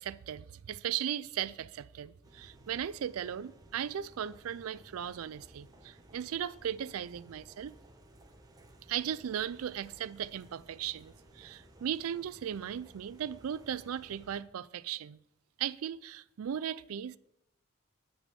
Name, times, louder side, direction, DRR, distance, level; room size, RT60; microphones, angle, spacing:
voice 1, 0.0-7.7 8.9-15.2 15.6-17.2, right 9 dB, 90° right, 0.4 m, -37 dB
sound 1, 2.2-14.4, right 1 dB, 20° right, 1.0 m, -57 dB
9.9 x 6.0 x 6.9 m
head